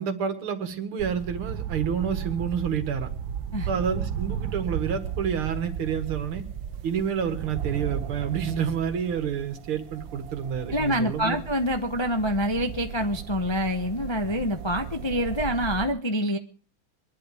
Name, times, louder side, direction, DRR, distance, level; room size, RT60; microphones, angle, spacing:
voice 1, 0.0-3.1 3.7-6.4 6.8-11.4, right 7 dB, 90° right, 8 dB, 2.6 m, -29 dB
sound 1, 1.0-15.9, right 8 dB, 65° right, 1.6 m, -35 dB
voice 2, 10.7-16.4, equal, 35° left, 6 dB, 0.4 m, -26 dB
23.5 x 11.5 x 4.9 m, 0.41 s
omnidirectional pair, 2.3 m